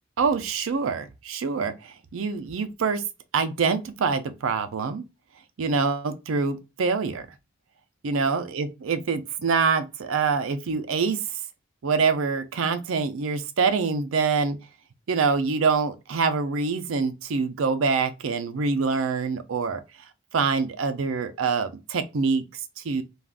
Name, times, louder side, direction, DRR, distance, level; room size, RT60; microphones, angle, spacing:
voice 1, 0.2-3.0 3.3-5.0 5.6-7.3 8.0-11.2 11.8-14.6 15.1-19.8 20.3-23.0, right 5 dB, 85° right, 0.5 m, -25 dB
3.4 x 2.4 x 2.4 m
head